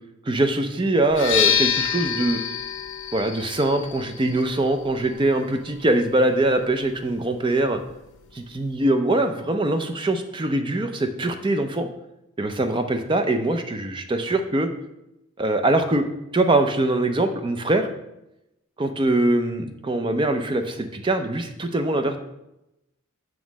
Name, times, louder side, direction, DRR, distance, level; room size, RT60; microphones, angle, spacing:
voice 1, 0.3-2.4 3.1-7.8 8.3-11.9 12.4-14.7 15.4-16.1 16.3-17.9 18.8-22.2, right 2 dB, 25° right, 7 dB, 0.4 m, -22 dB
sound 1, 1.1-8.8, left 8 dB, 65° left, 0.9 m, -29 dB
7.3 x 3.1 x 5.9 m, 0.90 s
head